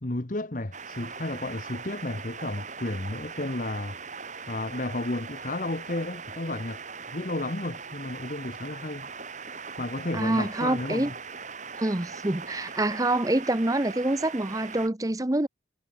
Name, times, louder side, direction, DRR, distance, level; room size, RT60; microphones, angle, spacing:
voice 1, 0.0-4.0 4.5-6.8 7.1-9.1 9.8-11.1, left 2 dB, 40° left, 1.3 m, -32 dB
sound 1, 0.7-14.9, right 5 dB, 40° right, 5.2 m, -40 dB
voice 2, 10.1-11.1 11.8-15.5, right 1 dB, 20° right, 0.7 m, -26 dB
head